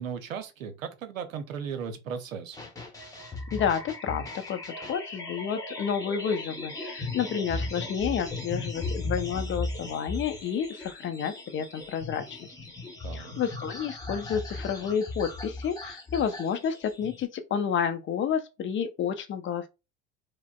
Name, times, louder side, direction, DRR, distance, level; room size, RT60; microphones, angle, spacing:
voice 1, 0.0-2.6 13.0-13.3, right 7 dB, 85° right, 0.7 m, -36 dB
sound 1, 2.5-17.2, left 2 dB, 10° left, 1.1 m, -37 dB
voice 2, 3.5-12.5 13.1-19.7, left 7 dB, 30° left, 0.5 m, -30 dB
4.7 x 2.1 x 2.3 m
hypercardioid pair, 75°, 39 cm